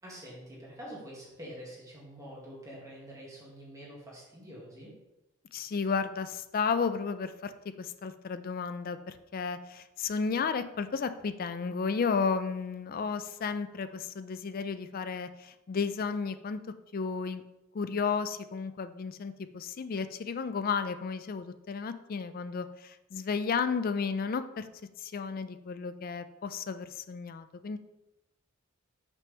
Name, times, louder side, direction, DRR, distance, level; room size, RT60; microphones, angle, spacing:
voice 1, 0.0-4.9, equal, 15° right, -6 dB, 2.1 m, -46 dB
voice 2, 5.5-16.6 16.9-17.4 17.7-24.7 25.0-27.8, left 5 dB, 45° left, 11 dB, 0.4 m, -33 dB
5.9 x 5.6 x 3.5 m, 0.94 s
head